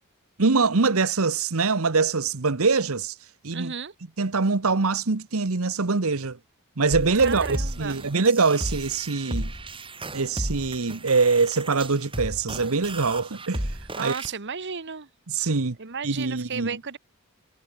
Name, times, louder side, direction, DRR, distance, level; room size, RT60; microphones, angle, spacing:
voice 1, 0.4-3.1 3.4-3.7 4.2-6.4 6.8-9.5 10.1-13.7 14.0-14.2 15.3-15.8 16.0-16.7, right 4 dB, 75° right, 1.1 m, -23 dB
voice 2, 3.5-3.9 7.2-8.1 14.0-15.1 15.8-17.0, right 5 dB, 55° right, 1.4 m, -33 dB
sound 1, 6.9-14.3, right 1 dB, 25° right, 4.7 m, -34 dB
head